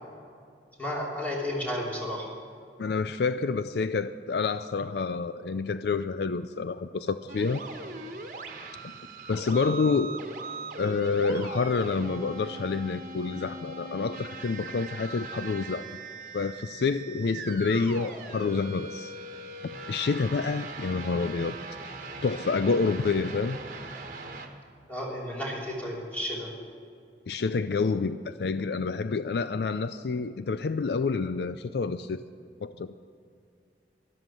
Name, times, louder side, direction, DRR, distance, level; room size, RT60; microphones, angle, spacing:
voice 1, 0.8-2.3 24.9-26.5, left 1 dB, 10° left, -4 dB, 3.2 m, -32 dB
voice 2, 2.8-7.6 9.3-10.2 10.8-15.9 16.3-19.1 19.9-21.6 22.2-23.6 27.3-32.2 32.6-32.9, left 4 dB, 65° left, 12 dB, 0.4 m, -28 dB
sound 1, 7.3-24.5, right 3 dB, 50° right, 1.5 m, -40 dB
13.0 x 12.5 x 6.2 m, 2.4 s
head